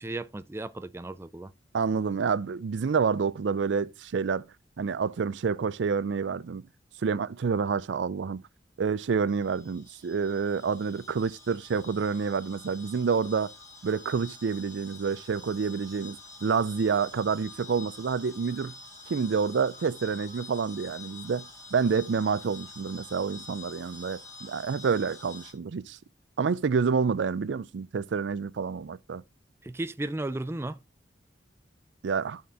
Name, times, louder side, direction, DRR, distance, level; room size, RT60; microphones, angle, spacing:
voice 1, 0.0-1.5 29.6-30.8, right 2 dB, 15° right, 0.4 m, -34 dB
voice 2, 1.7-4.5 4.8-6.6 7.0-8.4 8.8-13.5 13.8-18.7 19.1-26.0 26.4-29.2 32.0-32.4, right 5 dB, 85° right, 0.4 m, -28 dB
sound 1, 9.3-25.5, left 3 dB, 15° left, 2.8 m, -48 dB
13.0 x 4.3 x 3.6 m
head